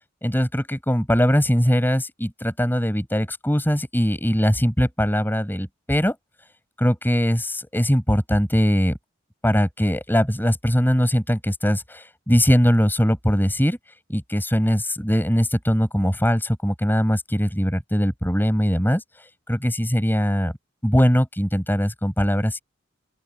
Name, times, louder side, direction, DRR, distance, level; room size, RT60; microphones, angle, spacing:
voice 1, 0.2-6.1 6.8-8.9 9.4-13.8 14.1-19.0 19.5-20.5 20.8-22.6, equal, 10° left, 7.5 m, -21 dB
open air
head